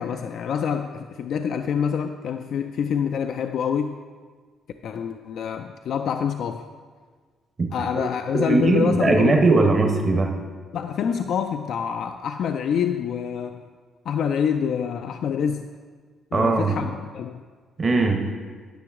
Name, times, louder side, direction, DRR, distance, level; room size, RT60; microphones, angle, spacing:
voice 1, 0.0-4.0 4.8-6.7 7.7-9.7 10.7-13.6 14.1-15.7 16.3-17.4, left 7 dB, 70° left, 6 dB, 0.3 m, -26 dB
voice 2, 8.3-10.3 16.3-16.8 17.8-18.3, right 3 dB, 35° right, 3 dB, 0.9 m, -20 dB
10.0 x 6.1 x 3.6 m, 1.5 s
cardioid pair, 90°, 0 cm